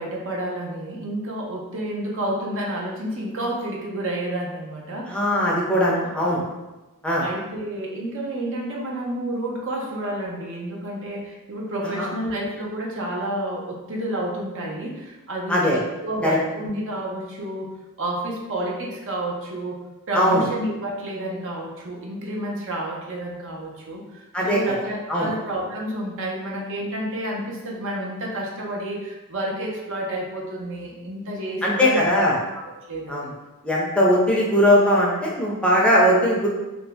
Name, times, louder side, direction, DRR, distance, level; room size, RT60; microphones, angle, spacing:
voice 1, 0.0-5.4 6.0-6.4 7.2-17.7 18.0-19.8 20.1-24.0 24.4-32.1 32.5-32.6 32.9-33.3, right 1 dB, 65° right, -2 dB, 0.7 m, -30 dB
voice 2, 5.1-6.4 7.0-7.2 12.0-12.1 15.5-15.8 16.2-16.4 20.1-20.4 24.3-24.6 25.1-25.3 31.6-32.4 33.1-33.3 33.6-36.5, equal, 5° left, -4 dB, 0.5 m, -19 dB
2.8 x 2.6 x 3.4 m, 1.1 s
head